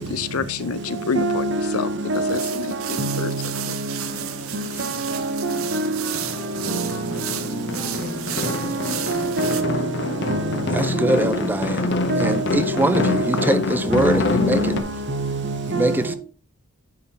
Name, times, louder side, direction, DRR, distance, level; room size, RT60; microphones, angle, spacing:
voice 1, 0.0-1.5 1.7-1.9 2.3-3.3, left 5 dB, 90° left, 0.6 m, -28 dB
voice 2, 1.1-2.7 3.0-4.0 4.5-6.0 6.6-7.0 8.5-9.9 10.2-11.5 12.1-13.4 13.9-14.1 14.3-14.8 15.1-16.0, right 2 dB, 55° right, 1.1 m, -26 dB
sound 1, 2.1-9.6, right 12 dB, 75° right, 0.7 m, -33 dB
sound 2, 3.6-3.7 4.0-5.2 5.5-14.8, left 3 dB, 50° left, 0.7 m, -26 dB
Wind instrument woodwind instrument, 3.9-9.7, left 1 dB, 10° left, 1.3 m, -40 dB
voice 3, 10.7-11.9 12.2-14.7 15.7-16.1, right 1 dB, 10° right, 0.4 m, -23 dB
9.5 x 4.0 x 4.1 m
head